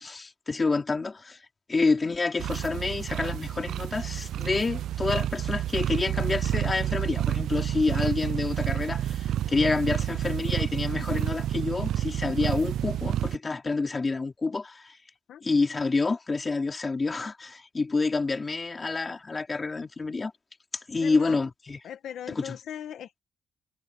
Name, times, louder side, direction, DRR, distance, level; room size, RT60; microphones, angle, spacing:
voice 1, 0.0-1.4 1.7-15.0 15.4-20.3 20.9-21.8 22.3-22.6, left 3 dB, 20° left, 3.7 m, -28 dB
sound 1, 2.4-13.4, right 11 dB, 70° right, 0.4 m, -29 dB
voice 2, 21.0-21.4 21.8-23.2, left 10 dB, 65° left, 1.8 m, -39 dB
cardioid pair, 165°, 0 cm